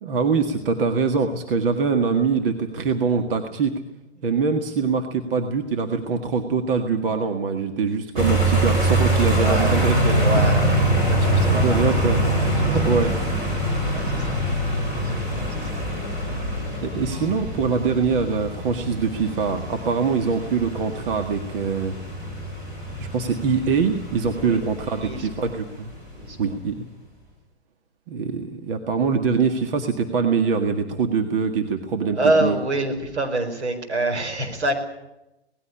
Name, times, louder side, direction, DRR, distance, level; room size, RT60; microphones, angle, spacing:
voice 1, 0.0-3.7 4.2-10.3 11.5-12.3 12.7-13.2 16.8-22.0 23.0-25.9 26.4-26.8 28.1-32.6, right 5 dB, 55° right, 6 dB, 1.9 m, -23 dB
sound 1, 8.2-26.7, right 1 dB, 25° right, 7.9 m, -24 dB
voice 2, 9.4-9.9 10.2-12.1 12.3-13.4 13.9-14.6 15.2-15.9 16.7-16.8 24.4-24.6 25.0-25.5 26.1-26.5 32.1-34.7, right 2 dB, 85° right, 5 dB, 4.8 m, -27 dB
19.0 x 15.5 x 9.8 m, 0.93 s
hypercardioid pair, 125°, 33 cm